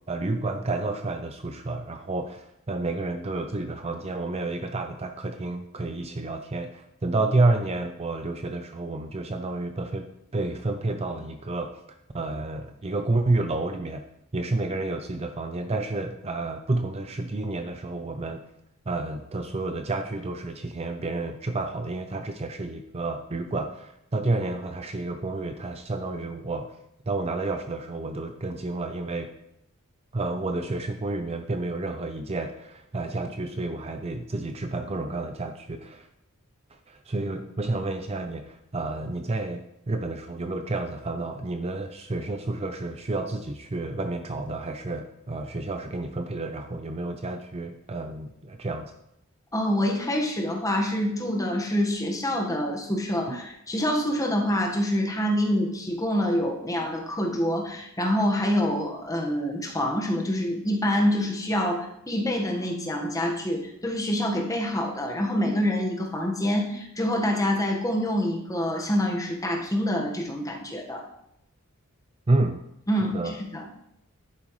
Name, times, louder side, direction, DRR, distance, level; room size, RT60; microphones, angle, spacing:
voice 1, 0.1-10.1 10.3-11.7 12.1-14.0 14.3-18.4 18.9-26.7 27.1-29.3 30.1-36.1 36.9-48.9 53.3-53.4 72.3-72.6 73.1-73.3, right 2 dB, 30° right, 7 dB, 0.5 m, -30 dB
voice 2, 49.5-71.0 72.9-73.6, equal, 15° left, 1 dB, 1.4 m, -26 dB
11.0 x 8.9 x 3.2 m, 0.80 s
head